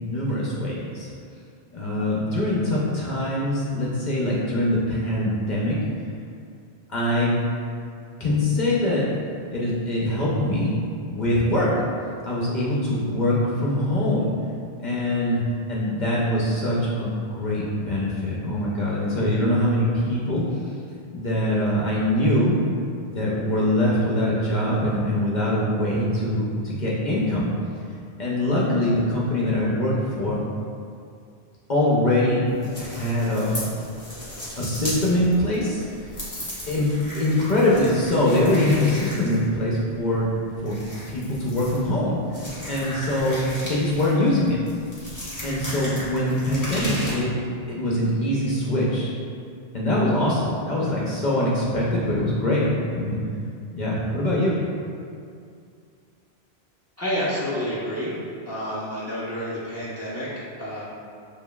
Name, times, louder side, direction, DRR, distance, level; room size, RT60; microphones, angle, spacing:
voice 1, 0.0-1.1 1.7-5.8 6.9-7.3 8.2-9.0 9.5-10.8 11.1-11.7 12.2-13.3 13.6-14.3 14.8-20.5 21.1-22.5 23.0-27.5 28.2-30.4 31.7-32.4 32.8-33.6 34.6-35.8 36.7-40.3 40.5-40.7 41.1-44.6 45.4-47.3 47.7-49.1 49.7-53.2 53.7-54.6, left 1 dB, 50° left, -6 dB, 0.7 m, -23 dB
sound 1, 32.5-47.1, equal, 20° left, 1.0 m, -36 dB
voice 2, 57.0-58.1 58.5-60.8, equal, 15° right, -9 dB, 0.7 m, -29 dB
7.0 x 2.5 x 2.2 m, 2.4 s
omnidirectional pair, 1.1 m